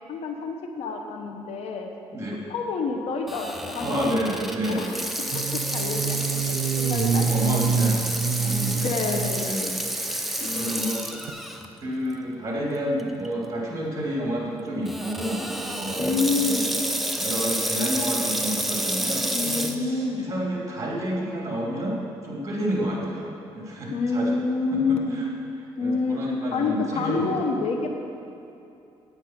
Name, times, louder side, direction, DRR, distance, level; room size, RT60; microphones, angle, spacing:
voice 1, 0.1-1.9 2.5-4.1 4.7-6.4 6.8-7.6 8.7-9.7 10.4-10.9 16.0-16.8 19.3-20.3 23.9-25.2 25.8-26.2 26.5-27.9, left 4 dB, 75° left, 3 dB, 1.0 m, -28 dB
Water tap faucet / Sink (filling or washing), 3.3-11.7 12.1-12.2 13.0-13.3 14.8-19.7, right 1 dB, ahead, 0.8 m, -29 dB
voice 2, 3.8-4.9 7.3-8.9 9.4-9.7 10.5-11.1 11.8-16.6 17.2-24.4 24.9-25.3 25.8-27.5, equal, 30° right, -2 dB, 2.9 m, -30 dB
sound 1, 5.3-9.5 10.1-10.5 11.3-11.4, right 6 dB, 80° right, 0.5 m, -26 dB
9.2 x 8.0 x 5.9 m, 2.7 s
cardioid pair, 85°, 11 cm